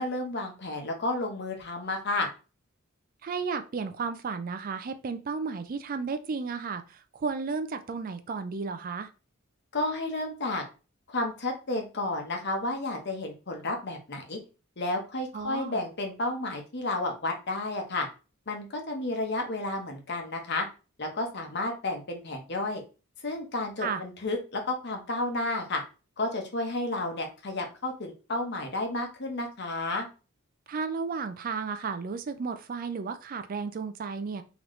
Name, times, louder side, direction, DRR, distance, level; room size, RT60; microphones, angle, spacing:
voice 1, 0.0-2.3 9.7-10.6 11.1-14.4 14.8-18.1 18.5-20.7 21.0-22.8 23.2-25.8 26.2-30.1, left 2 dB, 55° left, 3 dB, 0.9 m, -31 dB
voice 2, 3.2-6.8 7.1-9.1 15.3-15.8 23.8-24.0 30.7-34.4, right 5 dB, 40° right, 9 dB, 0.4 m, -33 dB
3.8 x 3.0 x 3.1 m, 0.32 s
head